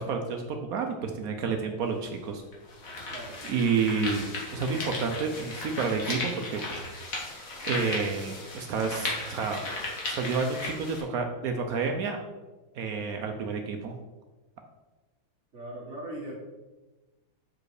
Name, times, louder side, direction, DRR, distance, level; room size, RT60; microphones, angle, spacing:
voice 1, 0.0-2.4 3.4-6.6 7.7-9.6 10.1-12.2 12.8-13.9, right 5 dB, 85° right, 4 dB, 0.8 m, -30 dB
sound 1, 1.8-1.9 2.5-11.0, left 2 dB, 40° left, 1.8 m, -36 dB
voice 2, 15.5-16.3, right 1 dB, 35° right, -7 dB, 1.5 m, -39 dB
7.3 x 4.9 x 4.8 m, 1.2 s
omnidirectional pair, 2.4 m